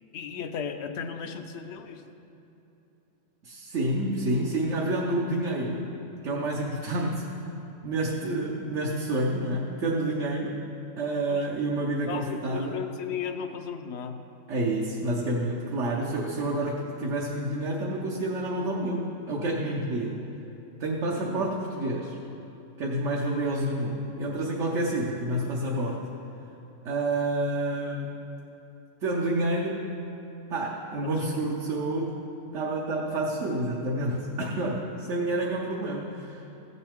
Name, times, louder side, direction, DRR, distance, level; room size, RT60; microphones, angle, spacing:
voice 1, 0.1-2.2 11.3-11.5 12.1-14.2 21.2-21.6 31.0-31.5 34.4-34.9, left 7 dB, 65° left, 8 dB, 0.9 m, -36 dB
voice 2, 3.4-5.8 6.2-7.2 7.8-10.5 11.0-12.8 14.5-20.2 20.8-22.2 22.8-26.0 26.8-28.1 29.0-29.9 30.5-32.2 32.5-36.4, right 1 dB, 65° right, -3 dB, 1.3 m, -29 dB
15.5 x 8.1 x 3.6 m, 3.0 s
omnidirectional pair, 1.3 m